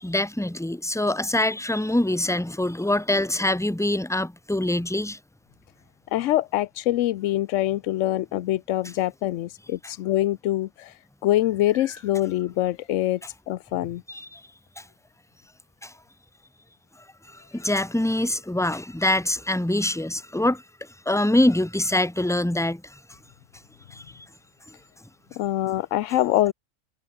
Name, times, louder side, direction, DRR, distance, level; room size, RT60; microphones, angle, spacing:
voice 1, 0.0-5.2 14.1-14.4 15.8-15.9 17.5-20.6 21.1-22.8 23.9-24.0, left 1 dB, 5° left, 0.8 m, -24 dB
voice 2, 6.1-10.9 11.2-13.2 13.5-14.0 25.4-26.5, left 14 dB, 75° left, 0.9 m, -24 dB
omnidirectional pair, 1.4 m